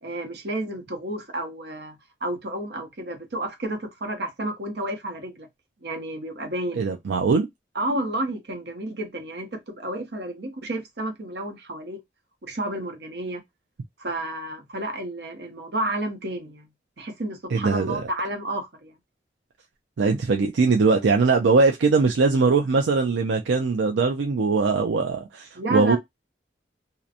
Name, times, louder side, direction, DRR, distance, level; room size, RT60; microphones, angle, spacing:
voice 1, 0.0-5.5 5.8-6.8 7.7-12.0 12.5-13.4 14.0-16.7 17.0-19.0 25.5-26.0, right 1 dB, 65° right, 0.8 m, -31 dB
voice 2, 6.8-7.5 17.5-18.0 20.0-26.0, right 4 dB, 85° right, 0.4 m, -21 dB
2.8 x 2.1 x 2.4 m
head